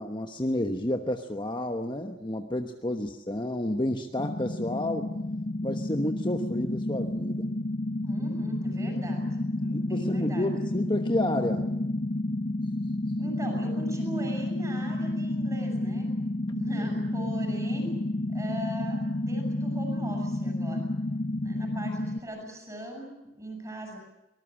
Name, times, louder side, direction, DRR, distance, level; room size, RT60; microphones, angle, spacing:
voice 1, 0.0-5.1 5.6-7.5 9.7-11.7, left 1 dB, 25° left, 5 dB, 1.1 m, -30 dB
sound 1, 4.2-22.2, left 1 dB, 45° left, 1.1 m, -30 dB
voice 2, 8.0-10.5 13.2-16.1 16.5-18.0 18.3-20.8 21.4-24.0, right 1 dB, 15° right, 2 dB, 7.9 m, -40 dB
24.0 x 19.5 x 8.8 m, 0.94 s
head